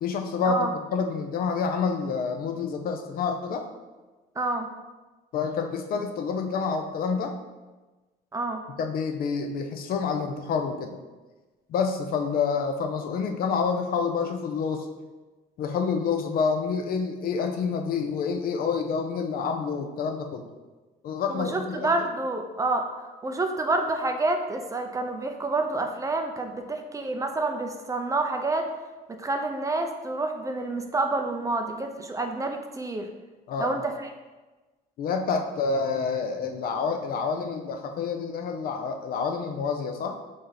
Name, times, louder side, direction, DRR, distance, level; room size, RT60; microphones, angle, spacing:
voice 1, 0.0-3.7 5.3-7.4 8.8-11.0 11.7-14.9 15.6-20.5 21.0-21.9 33.5-33.8 35.0-40.2, left 5 dB, 60° left, 5 dB, 0.5 m, -28 dB
voice 2, 4.4-4.7 8.3-8.6 21.3-22.8 23.2-28.7 29.1-33.1 33.6-34.1, right 2 dB, 20° right, 5 dB, 0.4 m, -28 dB
4.1 x 3.3 x 3.9 m, 1.2 s
cardioid pair, 110°, 17 cm